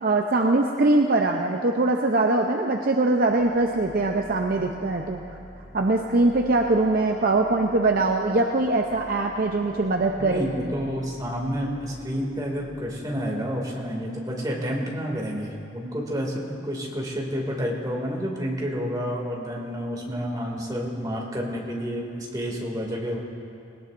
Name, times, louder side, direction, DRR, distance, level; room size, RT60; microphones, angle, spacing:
voice 1, 0.0-5.2 5.7-10.5, right 2 dB, 50° right, 2 dB, 0.6 m, -22 dB
sound 1, 3.2-13.9, equal, 5° right, 3.7 m, -47 dB
voice 2, 10.2-23.2, equal, 20° right, -2 dB, 2.4 m, -29 dB
20.5 x 18.5 x 2.6 m, 2.5 s
head